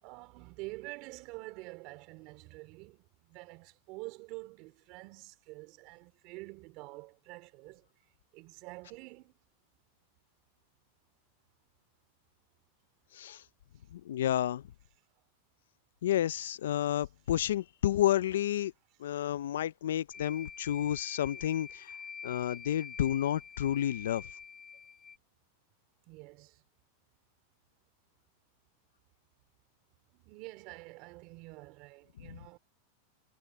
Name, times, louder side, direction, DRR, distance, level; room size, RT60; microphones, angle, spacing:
voice 1, 0.0-7.8 8.3-9.3 26.1-26.6 30.1-32.6, right 23 dB, 45° right, 3.3 m, -47 dB
voice 2, 13.9-14.6 16.0-18.7 19.0-21.9 22.2-24.2 32.2-32.4, left 11 dB, 90° left, 0.4 m, -30 dB
sound 1, 20.1-25.2, left 6 dB, 15° left, 2.4 m, -46 dB
supercardioid pair, 145°, 0 cm